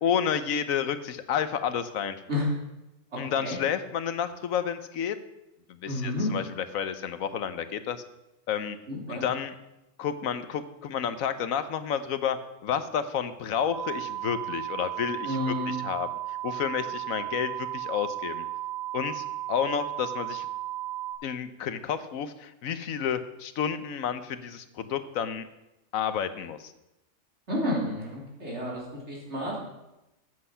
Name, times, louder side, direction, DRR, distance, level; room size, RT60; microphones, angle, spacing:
voice 1, 0.0-2.2 3.2-5.2 5.7-8.0 8.5-8.8 9.1-9.5 10.0-12.4 12.6-18.5 18.9-20.5 21.2-25.5 25.9-26.7, left 8 dB, 85° left, 12 dB, 1.2 m, -30 dB
voice 2, 5.8-6.3 8.9-9.2 15.2-15.7 27.5-29.6, left 1 dB, 55° right, -3 dB, 3.8 m, -30 dB
sound 1, 13.7-21.1, right 14 dB, 15° right, 3.4 m, -34 dB
14.0 x 7.9 x 5.6 m, 0.94 s
omnidirectional pair, 1.4 m